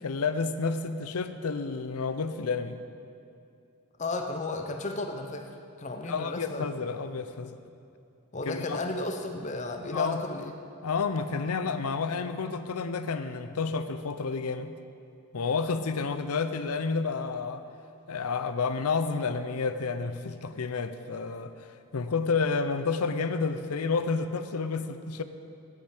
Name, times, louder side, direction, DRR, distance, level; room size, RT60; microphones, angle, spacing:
voice 1, 0.0-2.8 6.0-7.6 8.4-8.8 9.9-10.2 10.8-14.7 15.3-17.6 18.1-25.2, left 4 dB, 85° left, 11 dB, 0.6 m, -30 dB
voice 2, 4.0-6.7 8.3-10.5, left 2 dB, 35° left, 5 dB, 0.6 m, -34 dB
8.5 x 8.2 x 8.7 m, 2.6 s
head